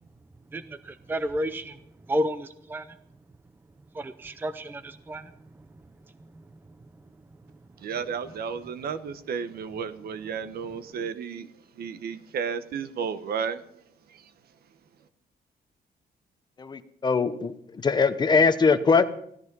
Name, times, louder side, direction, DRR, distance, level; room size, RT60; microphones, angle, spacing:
voice 1, 0.5-1.8 2.1-3.0 3.9-5.3, equal, 10° right, 12 dB, 0.5 m, -31 dB
voice 2, 7.8-11.5 11.8-13.6, right 6 dB, 70° right, 12 dB, 1.1 m, -32 dB
voice 3, 16.6-17.5 17.8-19.0, left 5 dB, 25° left, 10 dB, 0.8 m, -21 dB
17.0 x 13.5 x 5.4 m, 0.70 s
cardioid pair, 170°, 17 cm